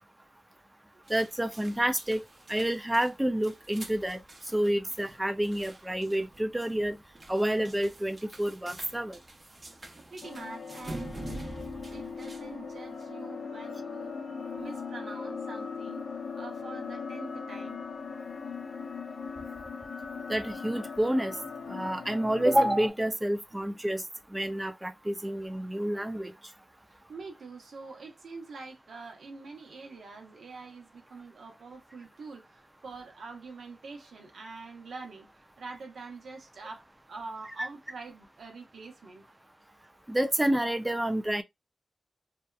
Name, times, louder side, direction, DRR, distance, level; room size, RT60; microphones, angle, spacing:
sound 1, 1.0-13.1, right 2 dB, 40° right, 0.8 m, -47 dB
voice 1, 1.1-2.2 2.5-4.2 4.5-7.0 7.3-9.2 20.3-21.4 21.7-24.0 24.3-26.3 40.1-41.4, right 1 dB, 15° right, 0.4 m, -28 dB
voice 2, 10.0-11.3 11.9-14.2 14.6-17.8 26.9-39.4, right 4 dB, 85° right, 0.8 m, -45 dB
sound 2, 10.2-22.9, left 5 dB, 85° left, 0.4 m, -39 dB
2.7 x 2.3 x 2.2 m
cardioid pair, 60°, 0 cm